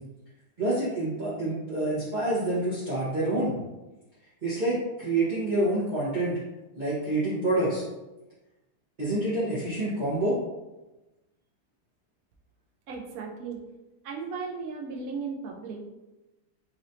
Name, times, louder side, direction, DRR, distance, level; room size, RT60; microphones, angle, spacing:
voice 1, 0.6-3.5 4.4-6.4 6.7-7.8 9.0-10.4, right 2 dB, 30° right, -11 dB, 1.2 m, -27 dB
voice 2, 12.9-13.6 14.0-15.8, right 5 dB, 65° right, 0 dB, 0.9 m, -36 dB
4.0 x 3.3 x 2.7 m, 1.0 s
omnidirectional pair, 2.0 m